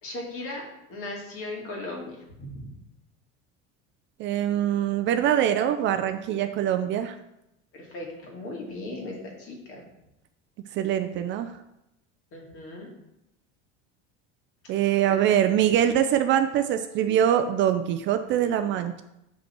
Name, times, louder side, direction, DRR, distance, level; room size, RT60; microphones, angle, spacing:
voice 1, 0.0-2.6 7.7-9.9 12.3-12.9 15.1-15.2, left 2 dB, 45° left, -1 dB, 2.3 m, -37 dB
voice 2, 4.2-7.2 10.7-11.5 14.7-19.0, right 10 dB, 40° right, 9 dB, 0.4 m, -23 dB
6.8 x 5.3 x 4.4 m, 0.86 s
cardioid pair, 145°, 30 cm